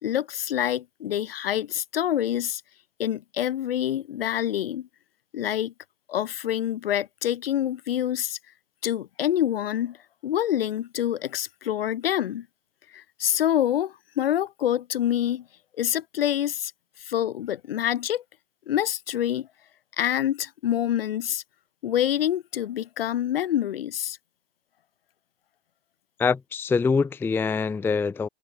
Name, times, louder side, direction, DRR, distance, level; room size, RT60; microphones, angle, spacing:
voice 1, 0.0-2.6 3.0-4.9 5.3-5.7 6.1-8.4 8.8-10.0 10.2-12.5 12.9-15.4 15.8-16.7 17.0-18.2 18.7-19.5 20.0-21.4 21.8-24.2, left 11 dB, 65° left, 1.4 m, -26 dB
voice 2, 26.2-28.3, left 5 dB, 5° left, 0.5 m, -24 dB
figure-of-eight pair, 95°, 32 cm